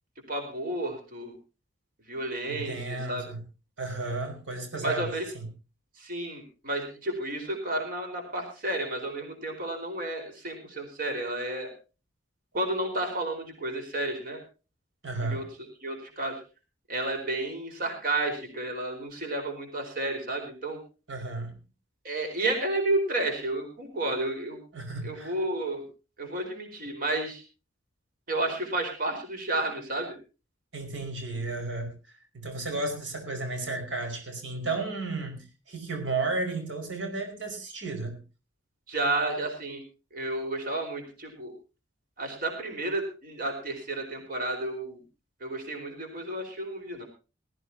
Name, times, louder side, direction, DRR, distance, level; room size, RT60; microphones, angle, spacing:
voice 1, 0.3-1.3 2.1-3.2 4.8-5.2 6.0-11.7 12.5-14.4 15.2-15.5 15.8-16.4 16.9-20.8 22.0-24.6 25.0-25.8 26.2-27.4 28.3-30.2 38.9-39.8 40.1-41.5 42.2-45.0 45.4-47.0, right 2 dB, 50° right, 4 dB, 4.5 m, -31 dB
voice 2, 2.5-3.4 3.8-5.1 5.3-5.5 15.0-15.4 21.1-21.5 24.7-25.3 30.7-38.2, right 3 dB, 90° right, 4 dB, 5.1 m, -33 dB
20.5 x 15.0 x 2.8 m, 0.32 s
head